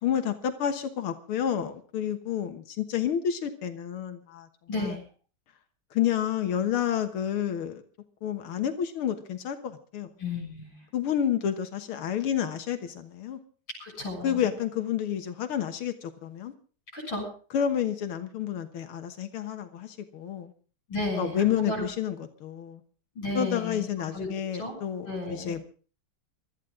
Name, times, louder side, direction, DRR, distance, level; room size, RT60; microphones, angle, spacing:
voice 1, 0.0-4.5 4.8-4.9 5.9-7.8 8.2-10.1 10.9-13.4 14.2-16.5 17.5-20.5 21.2-22.8 23.3-25.6, left 9 dB, 85° left, 2.2 m, -30 dB
voice 2, 4.7-5.0 10.2-10.8 13.8-14.4 16.9-17.3 20.9-21.8 23.2-23.9 24.1-24.3 24.5-24.8 25.0-25.5, left 2 dB, 65° left, 7.9 m, -33 dB
24.5 x 13.5 x 3.8 m
omnidirectional pair, 2.3 m